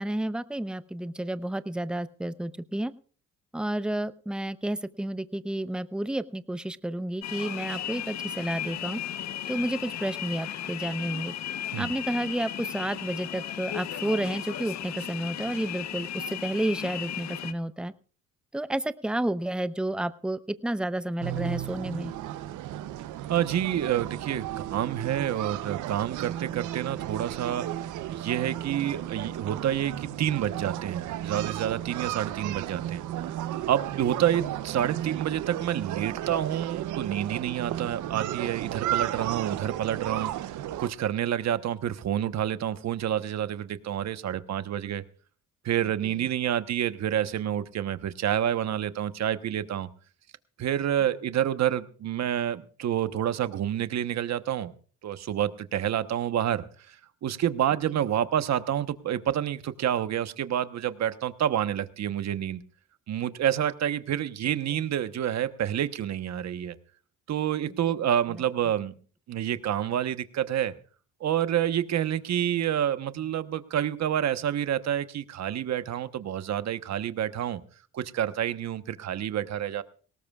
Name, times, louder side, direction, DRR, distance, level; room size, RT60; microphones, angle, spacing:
voice 1, 0.0-2.9 3.5-9.0 9.5-11.3 11.8-17.9 18.5-22.1 67.9-68.0, right 1 dB, 5° right, 14 dB, 0.7 m, -31 dB
sound 1, 7.2-17.5, left 10 dB, 65° left, 0.9 m, -35 dB
sound 2, 21.2-40.9, right 12 dB, 85° right, 0.8 m, -34 dB
voice 2, 23.3-27.7 28.1-33.0 33.7-45.0 45.6-49.9 50.6-54.7 55.0-57.0 57.2-62.6 63.1-66.8 67.3-68.9 69.3-70.7 71.2-77.6 77.9-79.8, right 10 dB, 60° right, 12 dB, 1.1 m, -28 dB
19.0 x 18.0 x 2.4 m, 0.40 s
cardioid pair, 90°, 30 cm